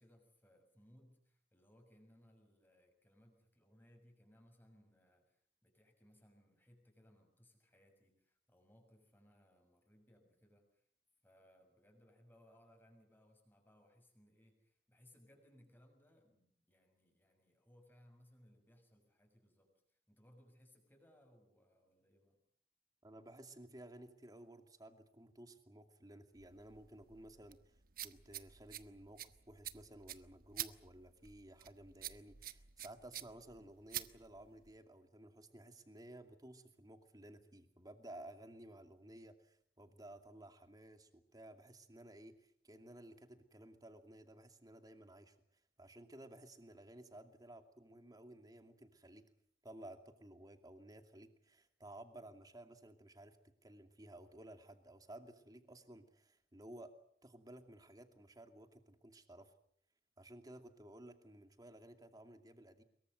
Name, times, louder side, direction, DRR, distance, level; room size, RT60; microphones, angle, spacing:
voice 1, 0.0-10.8 11.2-22.4, equal, 10° left, 4 dB, 6.5 m, -67 dB
voice 2, 23.0-45.4 45.8-49.2 49.6-53.4 53.6-56.9 57.2-59.5 60.2-62.8, right 1 dB, 20° right, 7 dB, 2.5 m, -56 dB
sound 1, 26.4-34.8, right 12 dB, 55° right, 1.1 m, -49 dB
24.5 x 22.5 x 7.9 m, 0.65 s
head